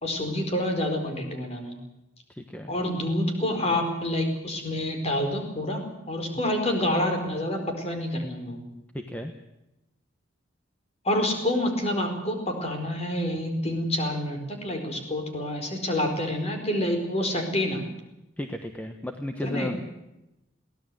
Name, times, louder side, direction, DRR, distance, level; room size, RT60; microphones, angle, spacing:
voice 1, 0.0-1.7 2.7-8.6 11.0-17.8 19.4-19.8, left 1 dB, 30° left, 4 dB, 4.6 m, -28 dB
voice 2, 2.3-2.7 8.9-9.3 18.4-19.8, left 1 dB, 5° left, 5 dB, 1.2 m, -34 dB
23.0 x 17.0 x 7.8 m, 0.93 s
head